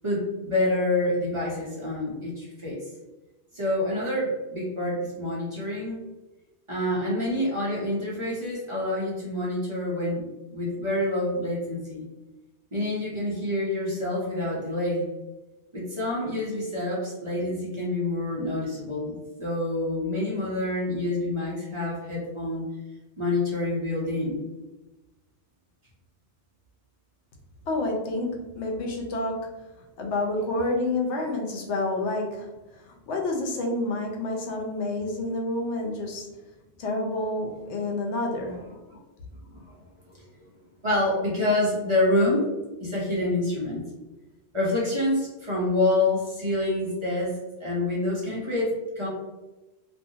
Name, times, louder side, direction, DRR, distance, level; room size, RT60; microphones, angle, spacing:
voice 1, 0.0-2.8 3.5-6.0 6.7-10.2 10.5-12.0 12.7-15.1 15.7-22.7 23.2-24.4 38.9-39.0 39.5-39.7 40.1-40.2 40.8-42.5 42.8-43.8 44.5-49.1, left 1 dB, 30° right, -6 dB, 0.7 m, -27 dB
voice 2, 27.7-29.4 30.0-32.5 33.1-36.3 36.8-38.6, left 2 dB, 80° left, 1 dB, 0.9 m, -28 dB
2.6 x 2.4 x 2.7 m, 1.1 s
omnidirectional pair, 1.2 m